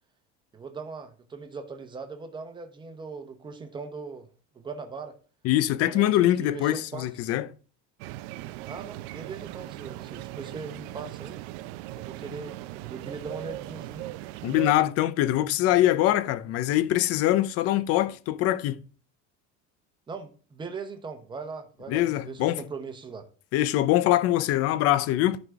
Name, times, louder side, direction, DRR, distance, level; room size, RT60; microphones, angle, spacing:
voice 1, 0.5-4.3 4.5-5.1 5.8-7.1 8.7-11.4 12.0-12.5 12.8-14.0 20.1-23.2, right 4 dB, 15° right, 1.0 m, -40 dB
voice 2, 5.4-7.5 14.4-18.8 21.9-22.6 23.5-25.4, left 14 dB, 45° left, 0.6 m, -23 dB
sound 1, 8.0-14.7, right 16 dB, 85° right, 0.6 m, -39 dB
11.5 x 4.0 x 4.7 m
cardioid pair, 165°, 33 cm